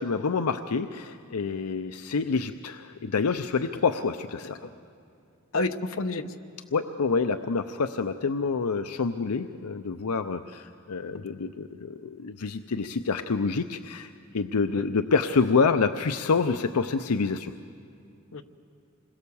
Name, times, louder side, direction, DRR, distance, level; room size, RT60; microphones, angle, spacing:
voice 1, 0.0-4.6 6.7-17.5, left 4 dB, 90° left, 9 dB, 0.6 m, -27 dB
voice 2, 5.5-6.3 11.1-11.2 14.7-14.9 18.3-18.4, left 2 dB, 70° left, 7 dB, 0.9 m, -30 dB
27.0 x 21.5 x 7.0 m, 2.5 s
head